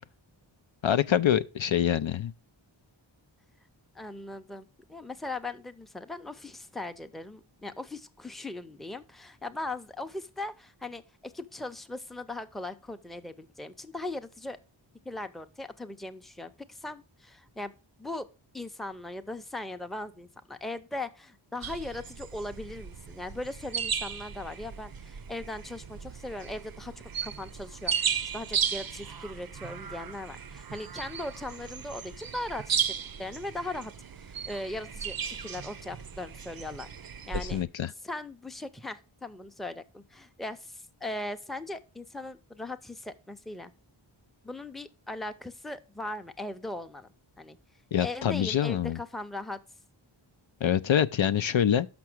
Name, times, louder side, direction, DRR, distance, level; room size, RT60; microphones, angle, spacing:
voice 1, 0.8-2.3 37.3-37.9 47.9-49.0 50.6-51.9, left 9 dB, 70° left, 0.5 m, -25 dB
voice 2, 3.9-14.6 15.0-17.7 18.0-18.3 18.5-26.9 27.2-33.9 34.5-36.9 37.3-37.6 38.0-43.7 44.4-47.1 47.4-47.6 48.0-49.6, left 2 dB, ahead, 0.6 m, -39 dB
sound 1, 21.6-37.6, right 7 dB, 50° right, 0.5 m, -35 dB
6.0 x 5.7 x 6.0 m
wide cardioid pair, 45°, 48 cm